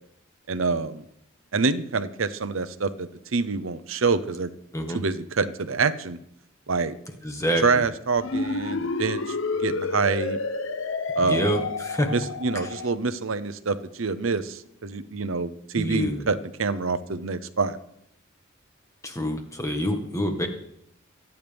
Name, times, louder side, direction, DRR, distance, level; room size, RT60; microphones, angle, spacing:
voice 1, 0.5-1.0 1.5-4.5 4.9-6.2 6.7-7.0 7.6-10.4 11.2-11.6 12.1-17.8, right 4 dB, 80° right, 12 dB, 0.8 m, -26 dB
voice 2, 7.2-7.8 11.2-12.1 15.7-16.3 19.0-20.5, equal, 15° left, 4 dB, 1.7 m, -27 dB
sound 1, 8.2-13.0, left 3 dB, 70° left, 0.8 m, -30 dB
26.0 x 9.4 x 3.6 m, 0.75 s
head